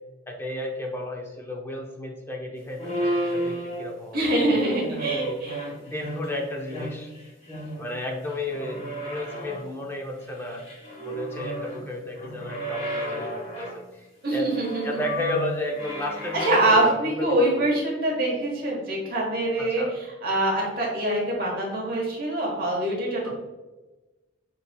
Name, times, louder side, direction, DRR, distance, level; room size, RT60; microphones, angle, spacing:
voice 1, 0.3-4.7 5.1-5.4 5.8-7.1 7.8-10.6 11.0-14.5 14.8-17.7 19.6-19.9 23.2-23.3, left 1 dB, 10° left, 0 dB, 0.5 m, -33 dB
sound 1, 2.8-4.1 4.6-6.4 6.7-8.0 8.3-9.7 10.2-11.8 12.1-13.8 14.4-16.9, right 1 dB, 35° left, 1.2 m, -32 dB
voice 2, 4.1-5.6 14.2-15.0 16.4-19.8 20.2-23.3, right 1 dB, 45° right, -2 dB, 1.2 m, -24 dB
6.7 x 2.7 x 2.2 m, 1.2 s
head